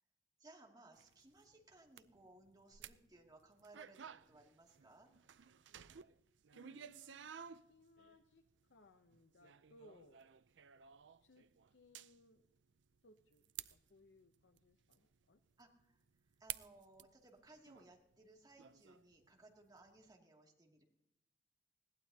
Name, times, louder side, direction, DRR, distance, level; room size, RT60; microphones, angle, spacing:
voice 1, 0.4-5.1 15.6-16.0 16.4-20.8, right 2 dB, 20° right, 0 dB, 2.4 m, -62 dB
sound 1, 1.0-19.3 19.8-20.2, right 10 dB, 80° right, 0.5 m, -54 dB
voice 2, 6.5-8.4 8.7-10.3 11.2-12.5 13.0-15.4, left 1 dB, 70° left, 8 dB, 0.8 m, -66 dB
21.0 x 17.0 x 2.8 m, 0.84 s
head